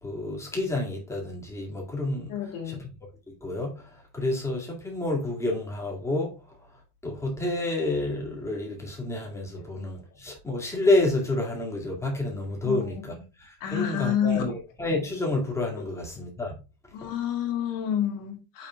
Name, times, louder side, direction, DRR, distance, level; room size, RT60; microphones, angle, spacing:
voice 1, 0.0-2.3 2.7-2.9 3.4-3.7 4.1-6.3 7.0-13.1 13.4-16.6, left 2 dB, 5° left, 2.2 m, -29 dB
voice 2, 2.3-2.9 9.5-9.6 12.6-13.2 13.6-14.5 15.8-15.9 16.9-18.7, left 9 dB, 45° left, 2.5 m, -29 dB
6.1 x 4.2 x 4.4 m
cardioid pair, 160°, 46 cm